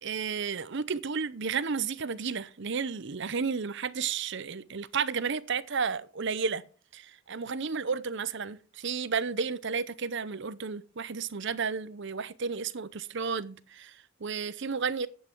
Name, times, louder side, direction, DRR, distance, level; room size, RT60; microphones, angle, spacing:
voice 1, 0.0-6.6 6.9-15.1, right 5 dB, 55° right, 0.7 m, -32 dB
11.0 x 8.4 x 4.5 m
head